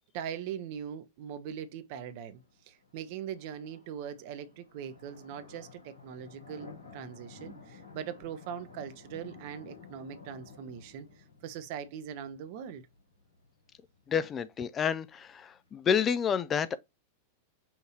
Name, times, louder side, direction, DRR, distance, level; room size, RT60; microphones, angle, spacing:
voice 1, 0.1-12.8, right 8 dB, 50° right, 0.6 m, -41 dB
sound 1, 2.0-15.9, left 4 dB, 75° left, 1.5 m, -54 dB
voice 2, 14.1-16.8, left 7 dB, 25° left, 0.3 m, -29 dB
5.7 x 2.7 x 2.8 m
figure-of-eight pair, 90°, 0 cm